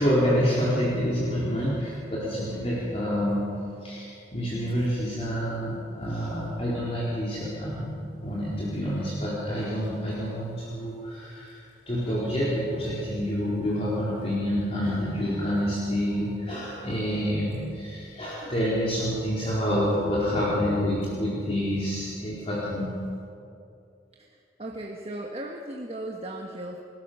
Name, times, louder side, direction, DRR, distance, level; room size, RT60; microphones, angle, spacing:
voice 1, 0.0-3.5 3.8-7.9 8.2-11.6 11.9-22.9, equal, 35° left, -7 dB, 4.3 m, -27 dB
voice 2, 24.2-26.8, right 1 dB, 35° right, 1 dB, 1.4 m, -37 dB
29.5 x 14.0 x 7.0 m, 2.6 s
head